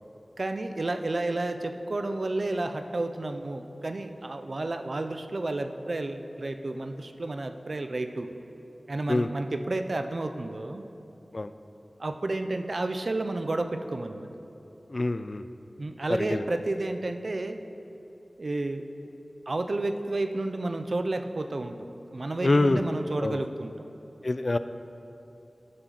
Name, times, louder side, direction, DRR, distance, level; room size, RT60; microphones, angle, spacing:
voice 1, 0.4-8.3 8.9-10.8 12.0-14.3 15.8-17.6 18.4-18.8 19.5-21.8 22.1-23.7, right 2 dB, 65° right, 7 dB, 0.5 m, -31 dB
voice 2, 14.9-15.4 16.1-16.4 22.4-22.8 23.2-23.4 24.2-24.6, left 2 dB, 50° left, 11 dB, 0.3 m, -25 dB
12.5 x 5.8 x 3.9 m, 2.9 s
wide cardioid pair, 50°, 0 cm